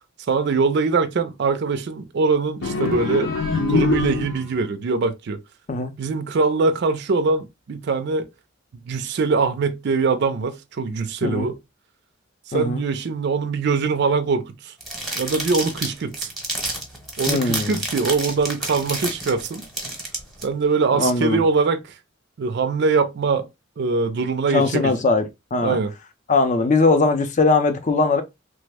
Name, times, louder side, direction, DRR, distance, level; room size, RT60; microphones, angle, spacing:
voice 1, 0.3-3.3 3.7-5.4 6.0-8.3 8.9-11.6 12.5-14.7 15.2-16.3 17.2-19.7 20.4-21.8 22.4-23.5 23.8-24.9 25.6-25.9, right 4 dB, 55° right, 0.4 m, -22 dB
sound 1, 2.6-4.7, left 3 dB, 70° left, 0.8 m, -23 dB
voice 2, 12.5-12.8 17.3-17.8 21.0-21.4 24.5-25.8 26.3-28.2, left 3 dB, 35° left, 0.5 m, -20 dB
sound 2, 14.8-20.4, right 1 dB, ahead, 0.9 m, -30 dB
3.2 x 2.0 x 3.3 m
head